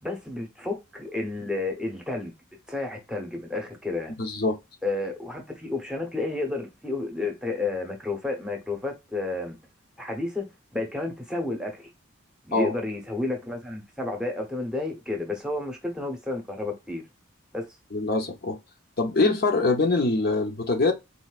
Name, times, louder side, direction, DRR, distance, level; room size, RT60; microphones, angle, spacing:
voice 1, 0.0-2.3 2.7-4.1 4.8-9.6 10.0-11.9 12.5-17.0 17.5-17.7, left 2 dB, 5° right, 0.9 m, -31 dB
voice 2, 4.2-4.6 12.5-12.7 17.9-18.6 19.0-20.9, left 3 dB, 45° left, 0.7 m, -23 dB
4.2 x 2.6 x 2.4 m
head